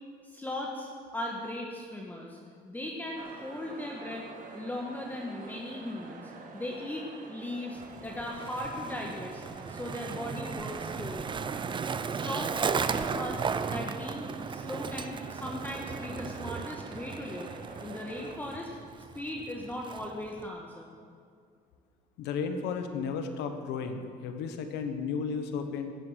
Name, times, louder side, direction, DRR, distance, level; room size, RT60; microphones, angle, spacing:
voice 1, 0.2-2.4 2.6-4.3 4.5-11.3 12.1-17.5 17.8-18.7 19.1-20.9, left 1 dB, 10° left, -1 dB, 1.6 m, -38 dB
sound 1, 3.2-18.4, right 4 dB, 50° right, 1.9 m, -48 dB
Skateboard, 7.8-20.5, right 6 dB, 30° right, 0.5 m, -36 dB
voice 2, 22.2-25.9, left 5 dB, 90° left, 7 dB, 1.3 m, -33 dB
16.5 x 7.9 x 7.5 m, 2.2 s
cardioid pair, 110°, 17 cm